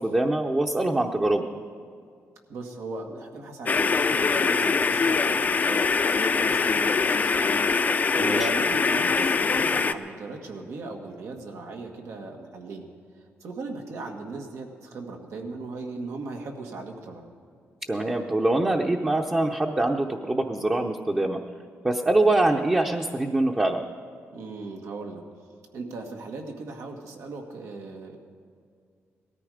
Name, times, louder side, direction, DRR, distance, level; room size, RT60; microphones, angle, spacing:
voice 1, 0.0-1.4 8.2-8.5 17.9-21.4 21.8-23.8, right 2 dB, 20° right, 1 dB, 0.8 m, -24 dB
voice 2, 2.5-5.9 6.3-7.6 8.2-12.9 13.2-17.3 24.3-25.2 25.7-28.2, right 3 dB, 90° right, 2 dB, 1.9 m, -38 dB
sound 1, 3.7-9.9, left 4 dB, 35° left, 0.5 m, -23 dB
18.5 x 13.5 x 5.0 m, 2.2 s
cardioid pair, 115°, 5 cm